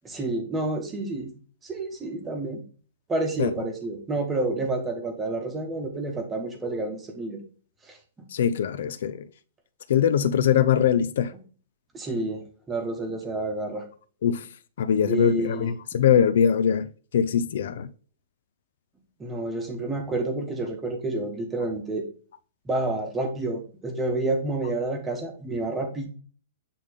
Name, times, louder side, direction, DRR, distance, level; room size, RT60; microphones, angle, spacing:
voice 1, 0.0-1.3 1.6-2.6 3.1-7.4 7.9-8.0 11.9-13.8 15.1-15.7 19.2-22.1 22.6-26.1, right 2 dB, 10° right, 1.0 m, -29 dB
voice 2, 8.3-9.3 9.9-11.3 14.2-14.4 14.8-16.9 17.1-17.9, left 8 dB, 55° left, 0.4 m, -22 dB
8.3 x 3.6 x 3.5 m
hypercardioid pair, 180°, 0 cm